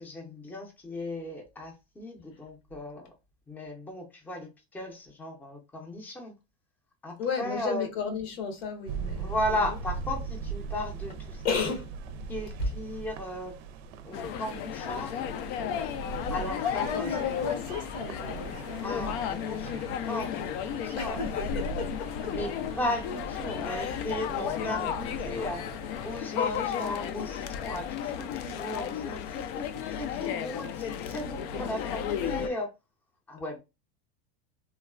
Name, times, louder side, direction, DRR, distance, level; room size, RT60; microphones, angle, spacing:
voice 1, 0.0-3.1 3.5-6.3 7.0-7.9 9.2-11.8 12.3-13.5 14.0-15.2 16.3-17.2 18.8-21.2 22.3-25.6 26.0-32.7 33.3-33.6, left 1 dB, 5° left, 0.6 m, -36 dB
voice 2, 7.2-9.7 11.4-11.9 12.6-12.7 16.8-18.9 21.0-22.3 23.7-24.0 32.5-32.6, left 5 dB, 90° left, 1.2 m, -33 dB
sound 1, 8.9-26.2, right 5 dB, 80° right, 0.5 m, -40 dB
sound 2, 14.1-32.5, left 9 dB, 65° left, 0.4 m, -34 dB
3.1 x 2.3 x 2.3 m
supercardioid pair, 140°, 31 cm